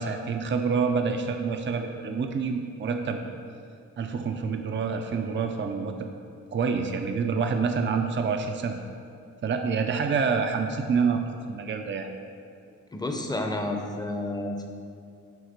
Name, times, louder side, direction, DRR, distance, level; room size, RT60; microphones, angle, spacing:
voice 1, 0.0-3.2 4.0-5.9 6.5-8.8 9.4-11.2 11.5-12.1, right 5 dB, 40° right, 5 dB, 0.5 m, -27 dB
voice 2, 12.9-14.7, left 2 dB, 15° left, 3 dB, 0.7 m, -30 dB
9.3 x 3.9 x 6.5 m, 2.3 s
wide cardioid pair, 170°, 31 cm